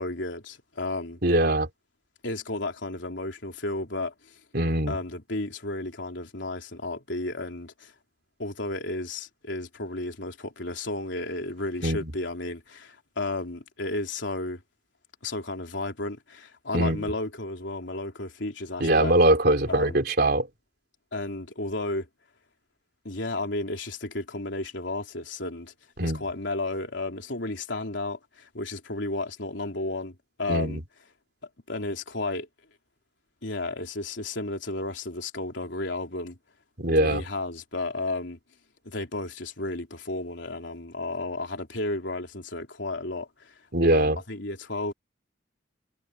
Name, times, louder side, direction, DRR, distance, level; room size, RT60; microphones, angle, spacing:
voice 1, 0.0-1.2 2.2-4.4 4.9-7.9 8.4-14.6 15.2-19.1 19.7-20.0 21.1-22.1 23.0-25.7 26.0-30.8 31.7-32.5 33.4-36.4 36.9-38.4 38.8-43.5 43.9-44.9, left 2 dB, 70° left, 3.6 m, -33 dB
voice 2, 1.2-1.7 4.5-5.0 11.8-12.0 16.7-17.0 18.8-20.5 26.0-26.2 30.5-30.8 36.8-37.2 43.7-44.2, right 1 dB, 55° right, 3.8 m, -22 dB
head